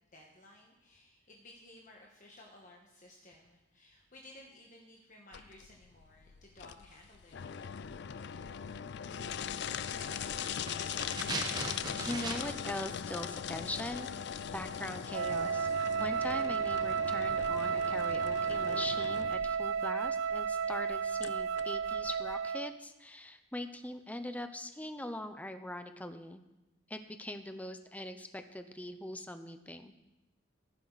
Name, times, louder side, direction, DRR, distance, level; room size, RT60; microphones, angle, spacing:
voice 1, 0.1-7.4, left 1 dB, 40° left, -1 dB, 1.5 m, -56 dB
sound 1, 5.3-22.4, left 7 dB, 55° left, 0.4 m, -41 dB
sound 2, 9.9-12.7 13.0-13.1, right 3 dB, 20° right, 1.2 m, -40 dB
voice 2, 12.0-14.1 14.5-15.7 16.0-26.4 26.9-29.9, left 1 dB, 5° left, 8 dB, 0.7 m, -41 dB
Wind instrument woodwind instrument, 15.1-22.8, right 6 dB, 75° right, 0.3 m, -33 dB
15.5 x 11.0 x 4.1 m, 0.97 s
head